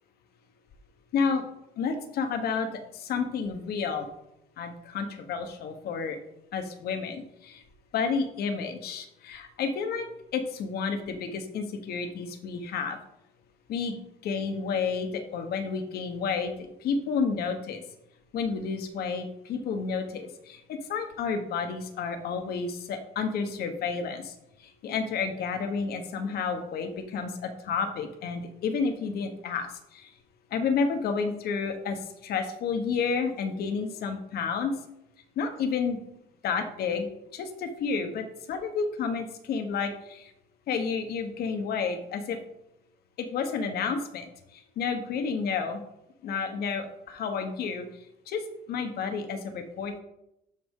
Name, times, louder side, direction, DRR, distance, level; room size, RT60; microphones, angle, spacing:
voice 1, 1.1-1.4 1.8-2.7 2.9-4.1 4.6-6.2 6.5-7.6 7.9-10.1 10.3-13.0 13.7-16.5 16.8-17.8 18.3-24.3 24.8-29.7 29.9-30.1 30.5-34.7 35.4-36.0 36.4-37.1 37.3-40.3 40.7-42.4 43.2-44.2 44.8-45.8 46.2-47.8 48.3-48.4 48.7-50.0, left 5 dB, 65° left, 6 dB, 1.2 m, -30 dB
12.5 x 4.2 x 3.7 m, 0.84 s
cardioid pair, 110°, 17 cm